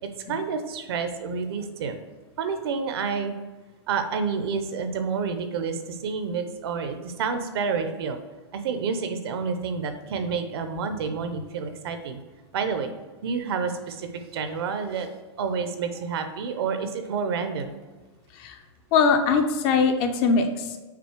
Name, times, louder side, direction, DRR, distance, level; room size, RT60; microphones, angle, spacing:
voice 1, 0.0-2.0 2.4-3.4 3.9-8.2 8.5-12.2 12.5-12.9 13.2-15.1 15.4-17.7, right 5 dB, 60° right, 8 dB, 0.8 m, -29 dB
voice 2, 18.9-20.8, left 5 dB, 30° left, 6 dB, 0.5 m, -21 dB
6.1 x 4.1 x 4.5 m, 1.3 s
hypercardioid pair, 155°, 15 cm